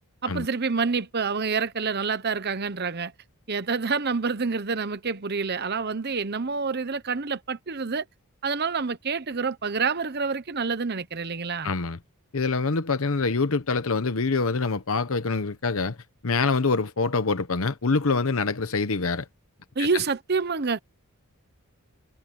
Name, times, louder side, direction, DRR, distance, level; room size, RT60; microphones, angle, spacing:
voice 1, 0.2-3.1 3.5-8.0 8.4-11.7 19.8-20.8, right 5 dB, 45° right, 1.0 m, -27 dB
voice 2, 11.6-12.0 12.3-16.0 16.2-19.2 19.8-19.9, left 4 dB, 70° left, 1.0 m, -25 dB
head